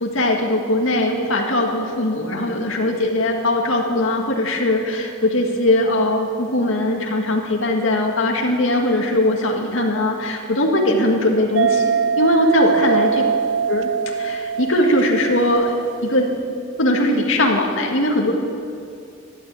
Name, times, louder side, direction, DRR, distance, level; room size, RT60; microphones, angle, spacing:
voice 1, 0.0-13.2 13.7-13.9 14.2-15.7 16.0-16.3 16.8-18.3, left 1 dB, 85° left, 1 dB, 2.1 m, -20 dB
sound 1, 11.5-16.3, right 6 dB, 70° right, 0.4 m, -22 dB
13.0 x 12.0 x 8.5 m, 2.4 s
head